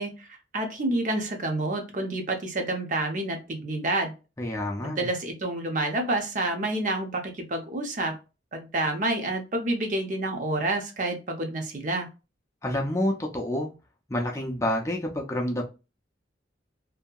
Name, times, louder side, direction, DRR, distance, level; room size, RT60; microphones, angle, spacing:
voice 1, 0.0-4.1 4.8-8.1 8.5-12.1, right 2 dB, 45° right, 0.6 m, -29 dB
voice 2, 4.4-5.1 12.6-13.7 14.1-15.6, left 1 dB, 15° left, 0.5 m, -28 dB
2.7 x 2.7 x 2.3 m
head